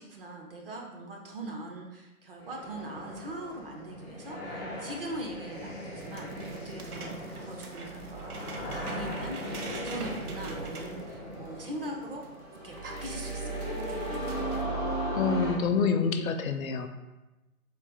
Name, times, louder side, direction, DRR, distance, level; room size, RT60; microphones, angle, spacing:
voice 1, 0.0-7.1 7.4-8.4 8.7-9.4 9.6-12.2 12.6-13.7, right 1 dB, 40° right, 0 dB, 0.6 m, -41 dB
sound 1, 2.4-15.5, right 1 dB, ahead, 0.4 m, -37 dB
sound 2, 6.0-11.9 12.2-12.3 12.6-14.6, right 3 dB, 80° right, 0.8 m, -45 dB
voice 2, 15.1-16.9, left 5 dB, 70° left, 7 dB, 0.5 m, -27 dB
4.0 x 2.4 x 3.6 m, 1.0 s
figure-of-eight pair, 145°, 44 cm